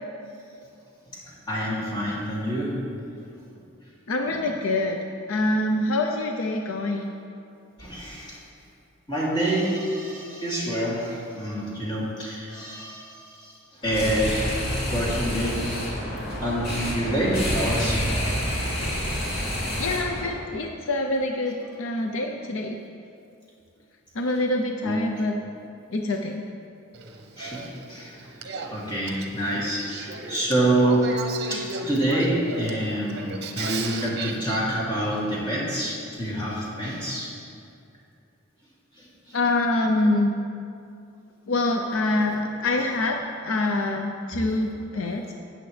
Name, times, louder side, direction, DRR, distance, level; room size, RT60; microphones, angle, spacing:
voice 1, 1.5-2.8 4.2-4.4 7.8-8.4 9.1-13.5 13.8-14.5 14.9-15.6 16.4-18.0 24.8-25.0 27.4-28.1 28.5-31.1 31.5-37.3 39.3-39.4 44.9-45.1, right 1 dB, 20° left, -7 dB, 2.7 m, -27 dB
voice 2, 4.1-5.0 5.3-7.1 17.7-17.9 19.8-22.8 24.1-25.4 25.9-26.4 39.3-40.3 41.5-43.2 43.4-45.3, left 2 dB, 75° left, 3 dB, 0.6 m, -25 dB
sound 1, 13.8-20.3, equal, 55° left, 2.4 m, -28 dB
Male speech man speaking / Female speech woman speaking / Conversation, 26.9-34.6, right 3 dB, 55° right, 0.8 m, -35 dB
13.0 x 9.0 x 3.3 m, 2.5 s
head